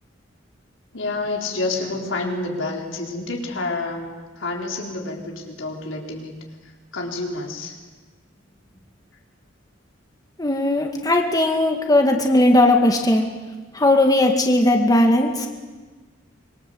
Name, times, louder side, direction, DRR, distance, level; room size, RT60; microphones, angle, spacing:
voice 1, 0.9-4.1 4.4-6.4 6.6-7.8, left 2 dB, 85° left, 0 dB, 4.3 m, -28 dB
voice 2, 10.4-13.3 13.7-15.5, left 1 dB, 20° left, 3 dB, 2.1 m, -17 dB
25.5 x 23.0 x 8.0 m, 1.3 s
head